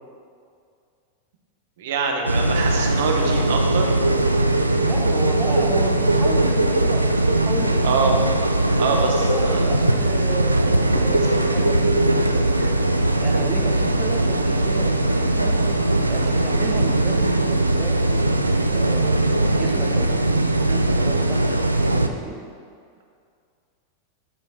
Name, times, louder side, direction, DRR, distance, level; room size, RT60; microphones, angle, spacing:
voice 1, 1.8-3.9 7.8-8.1 8.8-9.6, right 4 dB, 55° right, 2 dB, 1.1 m, -24 dB
sound 1, 2.3-22.1, right 2 dB, 85° right, 0.4 m, -20 dB
voice 2, 4.7-8.3 8.9-12.7 13.1-15.6 16.1-18.4 18.7-21.7 21.9-22.4, right 3 dB, 20° right, 0 dB, 1.2 m, -33 dB
9.3 x 5.4 x 4.3 m, 2.2 s
figure-of-eight pair, 90°, 0 cm